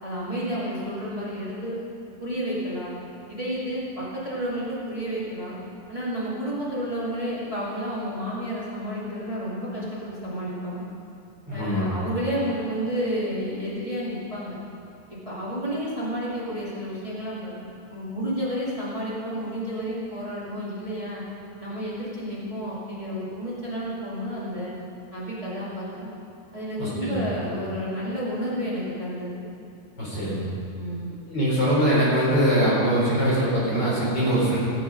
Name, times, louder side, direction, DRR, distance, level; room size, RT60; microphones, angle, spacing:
voice 1, 0.0-1.8 2.2-2.9 3.3-5.6 5.9-10.8 11.5-14.6 15.1-17.5 17.9-21.2 21.6-24.7 25.1-26.1 26.5-29.4 30.1-30.4 30.8-31.1, equal, 60° right, -8 dB, 0.3 m, -31 dB
voice 2, 11.5-11.9 26.8-27.3 30.0-30.5 31.3-34.6, right 1 dB, 25° left, -7 dB, 3.8 m, -22 dB
18.5 x 7.4 x 5.3 m, 2.7 s
omnidirectional pair, 4.9 m